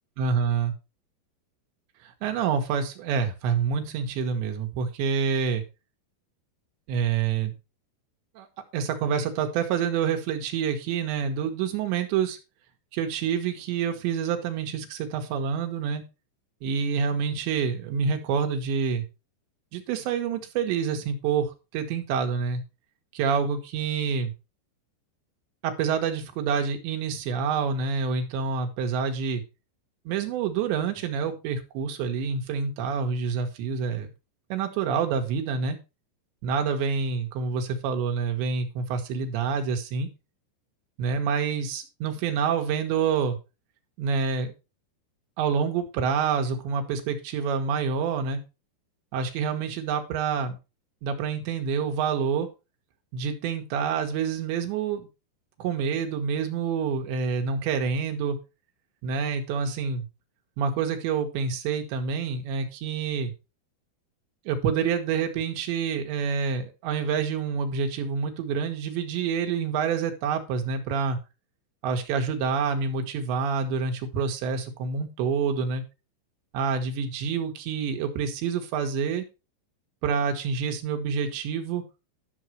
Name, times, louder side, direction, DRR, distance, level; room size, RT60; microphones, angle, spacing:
voice 1, 0.2-0.7 2.0-5.6 6.9-7.5 8.4-8.5 8.7-12.4 12.9-16.0 16.6-19.0 19.7-22.6 23.1-24.3 25.6-29.4 30.1-34.1 34.5-35.8 36.4-40.1 41.0-43.4 44.0-44.5 45.4-48.4 49.1-50.6 51.0-52.5 53.1-55.1 55.6-58.4 59.0-60.1 60.6-63.3 64.5-71.2 71.8-75.8 76.5-79.3 80.0-81.8, right 6 dB, 85° right, 5 dB, 3.8 m, -27 dB
12.0 x 6.4 x 4.5 m, 0.29 s
omnidirectional pair, 5.0 m